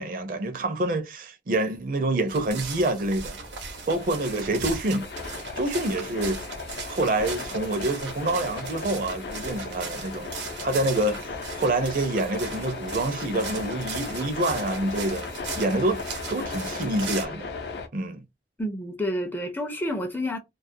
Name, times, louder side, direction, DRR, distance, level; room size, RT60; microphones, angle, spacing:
voice 1, 0.0-3.4 3.9-5.1 5.6-6.4 6.9-10.3 10.6-11.3 11.5-15.2 15.6-16.0 16.3-17.5 17.9-18.2, right 2 dB, 50° right, 0.5 m, -27 dB
sound 1, 2.3-17.3, right 5 dB, 85° right, 0.7 m, -38 dB
sound 2, 3.3-17.9, left 4 dB, 70° left, 0.5 m, -36 dB
voice 2, 18.6-20.4, left 1 dB, 10° left, 0.4 m, -29 dB
2.3 x 2.1 x 2.6 m
head